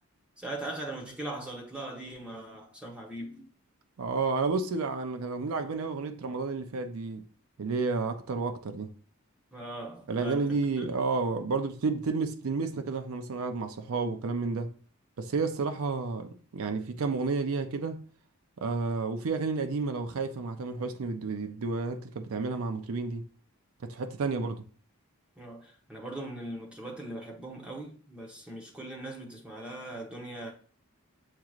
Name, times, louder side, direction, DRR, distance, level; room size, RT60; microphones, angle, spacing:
voice 1, 0.4-3.5 9.5-10.8 25.4-30.5, right 1 dB, 5° right, 0.9 m, -40 dB
voice 2, 4.0-7.3 7.6-8.9 10.1-14.7 15.2-18.0 18.6-23.2 23.8-24.6, right 4 dB, 75° right, 0.5 m, -31 dB
7.5 x 2.9 x 2.4 m
head